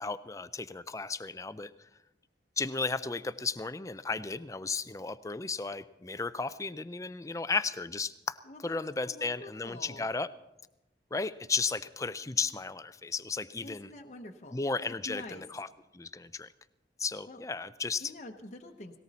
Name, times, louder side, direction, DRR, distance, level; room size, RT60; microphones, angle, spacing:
voice 1, 0.0-1.9 2.6-8.4 8.6-10.3 11.1-13.9 14.5-15.7 15.9-16.5 17.0-18.1, left 4 dB, 15° left, 14 dB, 0.4 m, -34 dB
voice 2, 8.5-10.1 13.6-14.6 14.9-15.4 17.3-17.4 18.0-19.0, left 1 dB, 40° left, 2 dB, 0.9 m, -47 dB
18.5 x 18.0 x 4.2 m, 0.96 s
head